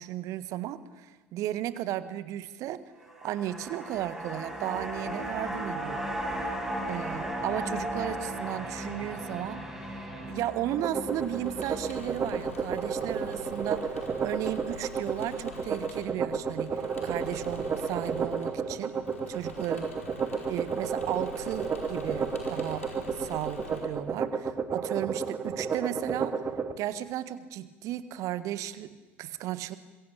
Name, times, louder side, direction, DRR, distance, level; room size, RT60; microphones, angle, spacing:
voice 1, 0.0-2.8 3.2-6.1 6.9-19.0 19.3-19.9 20.5-22.9 23.2-26.4 26.8-29.8, right 12 dB, 50° right, 14 dB, 1.6 m, -35 dB
sound 1, 3.0-13.4 13.7-13.8, right 1 dB, 5° right, 6.6 m, -36 dB
sound 2, 10.7-26.7, right 5 dB, 30° right, 2.1 m, -32 dB
Engine / Mechanisms, 10.9-23.8, left 2 dB, 80° left, 5.0 m, -45 dB
26.0 x 22.0 x 8.6 m, 1.2 s
figure-of-eight pair, 65°, 7 cm